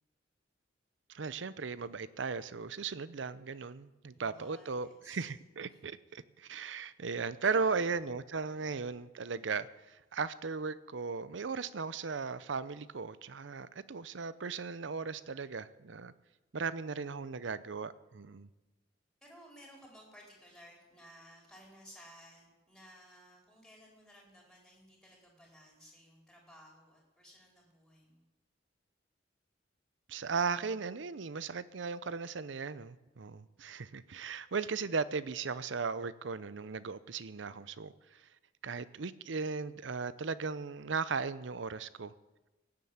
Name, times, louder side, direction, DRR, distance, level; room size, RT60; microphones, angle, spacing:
voice 1, 1.1-16.1 16.5-18.5 30.1-38.2 38.6-42.1, right 5 dB, 80° right, 16 dB, 0.7 m, -37 dB
voice 2, 4.1-5.3 5.7-5.8 7.4-7.7 19.2-28.2, equal, 5° left, -1 dB, 4.3 m, -57 dB
17.5 x 7.7 x 8.7 m, 1.1 s
head